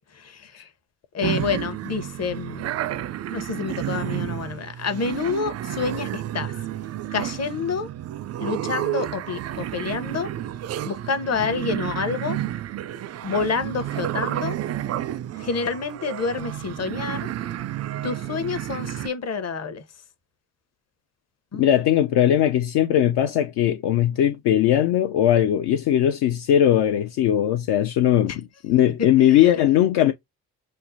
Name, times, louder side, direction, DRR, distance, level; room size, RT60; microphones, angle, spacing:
voice 1, 0.1-0.6 1.1-2.7 3.3-6.5 7.1-7.9 8.4-10.3 10.8-12.4 13.2-14.5 15.4-17.3 18.0-19.8 21.5-22.4 28.3-28.4 29.3-29.5, left 5 dB, 35° left, 0.9 m, -28 dB
sound 1, 1.2-19.1, right 12 dB, 35° right, 0.4 m, -31 dB
voice 2, 21.5-30.1, left 11 dB, 55° left, 0.6 m, -19 dB
5.5 x 2.1 x 2.7 m
hypercardioid pair, 45°, 46 cm